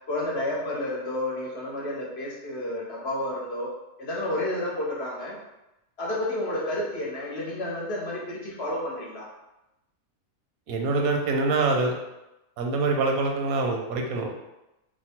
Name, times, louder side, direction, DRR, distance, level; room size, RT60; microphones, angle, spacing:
voice 1, 0.1-3.7 4.0-5.4 6.0-9.3, left 1 dB, 55° left, -4 dB, 0.9 m, -30 dB
voice 2, 10.7-11.9 12.6-14.3, right 3 dB, 85° right, 1 dB, 1.1 m, -25 dB
2.9 x 2.2 x 4.2 m, 0.94 s
omnidirectional pair, 1.5 m